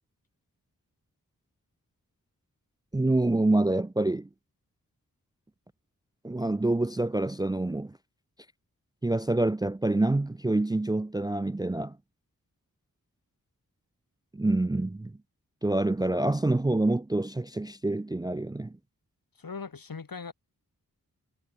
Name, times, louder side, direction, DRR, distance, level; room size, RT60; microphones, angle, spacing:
voice 1, 2.9-4.3 6.2-7.9 9.0-11.9 14.3-15.1 15.6-18.7, right 2 dB, 10° right, 0.4 m, -26 dB
voice 2, 19.4-20.3, left 5 dB, 75° left, 5.0 m, -39 dB
wide cardioid pair, 90°, 35 cm